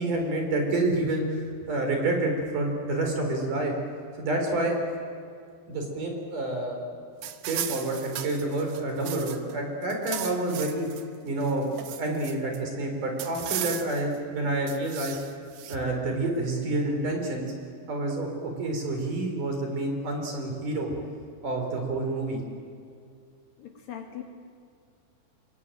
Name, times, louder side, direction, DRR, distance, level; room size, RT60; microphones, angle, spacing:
voice 1, 0.0-1.4 1.7-3.7 4.2-4.8 5.7-6.9 7.4-10.9 11.2-15.2 15.7-17.5 17.9-20.9 21.4-22.4, right 2 dB, 50° right, 3 dB, 5.6 m, -28 dB
sound 1, 7.2-9.5 9.8-11.0 11.4-12.6 13.2-14.2 14.7-15.8, right 11 dB, 65° right, 2.3 m, -36 dB
voice 2, 23.6-24.2, left 10 dB, 60° left, 3 dB, 3.7 m, -40 dB
27.5 x 23.5 x 9.3 m, 2.3 s
omnidirectional pair, 4.9 m